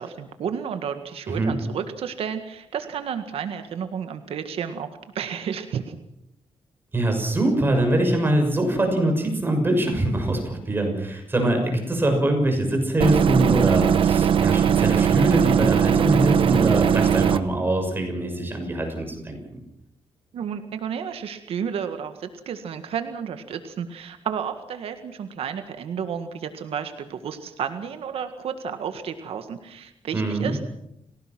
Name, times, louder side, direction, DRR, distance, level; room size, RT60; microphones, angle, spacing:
voice 1, 0.0-4.9 5.2-6.0 20.3-30.6, right 7 dB, 80° right, 8 dB, 1.8 m, -32 dB
voice 2, 6.9-19.4 30.1-30.6, right 1 dB, 20° right, 3 dB, 6.3 m, -23 dB
sound 1, 13.0-17.4, right 8 dB, 60° right, 1.1 m, -19 dB
30.0 x 17.5 x 6.1 m, 0.79 s
wide cardioid pair, 130°, 10 cm